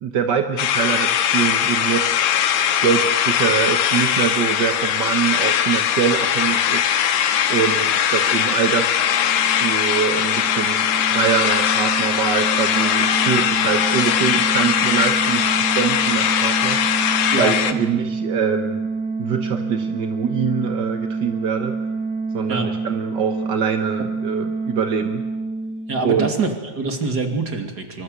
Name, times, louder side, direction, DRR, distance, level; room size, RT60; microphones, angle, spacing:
voice 1, 0.0-2.2 2.8-6.9 7.5-9.0 9.5-16.8 17.4-18.8 19.2-21.8 22.3-25.2 26.0-26.3, right 7 dB, 55° right, 6 dB, 1.3 m, -24 dB
sound 1, 0.6-17.7, left 9 dB, 80° left, 2.7 m, -20 dB
sound 2, 9.1-26.6, right 4 dB, 70° right, 3.9 m, -27 dB
voice 2, 25.9-28.0, right 3 dB, 35° right, 5 dB, 2.9 m, -24 dB
25.0 x 25.0 x 8.1 m, 1.1 s
omnidirectional pair, 3.4 m